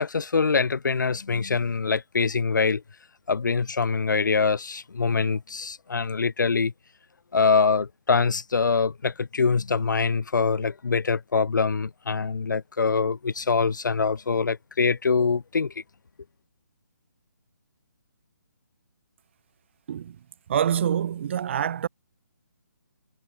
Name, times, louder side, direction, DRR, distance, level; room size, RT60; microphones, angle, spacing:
voice 1, 0.0-2.8 3.3-6.7 7.3-15.7, left 5 dB, 80° left, 0.5 m, -24 dB
voice 2, 20.5-21.9, right 9 dB, 40° right, 0.4 m, -26 dB
figure-of-eight pair, 150°, 10 cm